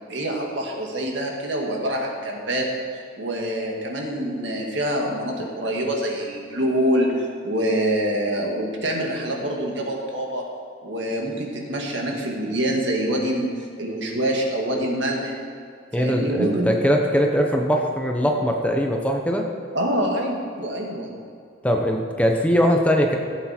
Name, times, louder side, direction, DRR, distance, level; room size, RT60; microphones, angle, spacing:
voice 1, 0.1-2.7 3.2-10.4 10.8-15.3 15.9-16.7 19.7-21.1, right 1 dB, 75° right, 0 dB, 2.0 m, -25 dB
voice 2, 15.9-19.5 21.6-23.2, equal, 5° left, 2 dB, 0.8 m, -21 dB
16.5 x 8.2 x 4.4 m, 2.4 s
head